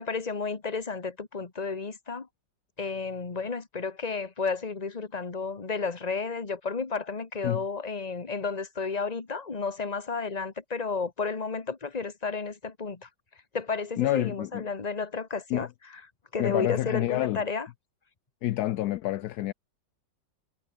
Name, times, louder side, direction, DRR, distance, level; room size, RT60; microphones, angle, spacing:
voice 1, 0.0-2.3 2.8-13.1 13.5-15.7 16.3-17.7, left 4 dB, 25° left, 1.7 m, -32 dB
voice 2, 14.0-14.6 15.5-15.7 16.4-17.4 18.4-19.5, left 15 dB, 70° left, 1.0 m, -28 dB
omnidirectional pair, 1.9 m